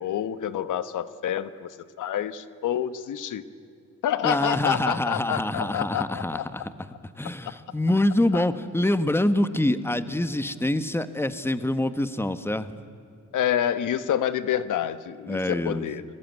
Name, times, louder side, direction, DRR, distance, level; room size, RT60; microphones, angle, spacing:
voice 1, 0.0-1.7 2.0-3.4 4.0-6.4 7.4-7.5 8.3-8.4 13.3-16.0, left 10 dB, 80° left, 13 dB, 1.1 m, -28 dB
voice 2, 4.2-6.7 7.2-12.7 15.3-15.9, left 1 dB, 10° left, 12 dB, 1.3 m, -25 dB
28.5 x 21.5 x 9.4 m, 2.4 s
cardioid pair, 85°, 31 cm